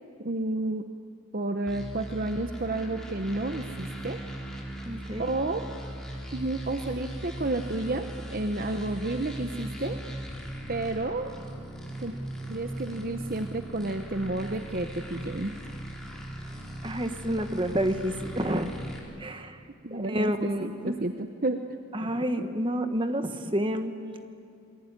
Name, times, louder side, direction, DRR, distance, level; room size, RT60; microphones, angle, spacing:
voice 1, 0.2-0.8 1.3-4.2 5.2-5.6 6.3-10.0 10.7-11.3 12.0-12.1 12.5-15.5 19.8-21.8, right 2 dB, 45° right, 7 dB, 0.9 m, -31 dB
sound 1, 1.7-19.0, right 1 dB, 5° left, 3.8 m, -39 dB
voice 2, 4.8-5.3 16.8-18.7 19.2-19.6 19.9-21.0 21.9-24.0, equal, 25° right, 7 dB, 1.4 m, -29 dB
27.5 x 22.0 x 9.8 m, 2.4 s
head